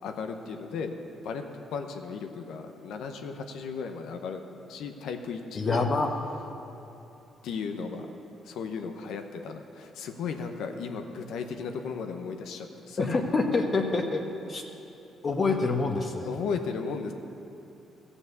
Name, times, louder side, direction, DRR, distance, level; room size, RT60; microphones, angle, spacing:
voice 1, 0.0-0.9 1.2-4.4 4.7-5.9 7.4-8.1 8.4-13.4 16.2-17.1, left 5 dB, 80° left, 5 dB, 0.8 m, -35 dB
voice 2, 5.5-6.1 13.0-14.2 14.5-14.6 15.2-16.3, left 3 dB, 40° left, 3 dB, 1.0 m, -26 dB
14.0 x 7.1 x 6.7 m, 2.9 s
cardioid pair, 90°, 0 cm